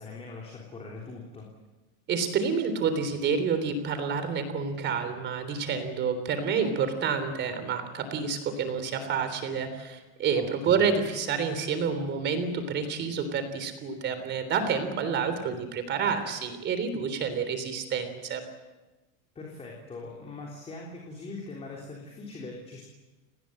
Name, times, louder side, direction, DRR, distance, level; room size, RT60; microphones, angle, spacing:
voice 1, 0.0-1.5 10.4-10.8 19.4-22.8, left 3 dB, 15° left, -1 dB, 3.5 m, -42 dB
voice 2, 2.1-18.4, right 6 dB, 25° right, 9 dB, 3.6 m, -29 dB
29.5 x 19.5 x 7.9 m, 1.1 s
supercardioid pair, 170°, 45 cm